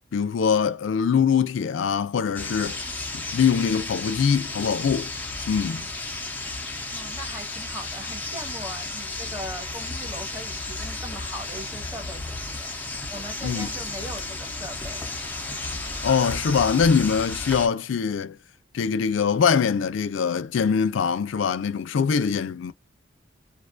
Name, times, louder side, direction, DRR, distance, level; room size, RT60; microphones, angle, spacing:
voice 1, 0.1-2.8 3.1-5.1 5.5-5.9 13.4-13.7 16.0-18.4 18.7-22.7, left 6 dB, 80° left, 0.4 m, -23 dB
sound 1, 2.4-17.7, left 2 dB, 10° left, 0.6 m, -33 dB
voice 2, 6.9-15.0, right 1 dB, 15° right, 1.1 m, -40 dB
2.4 x 2.3 x 2.4 m
head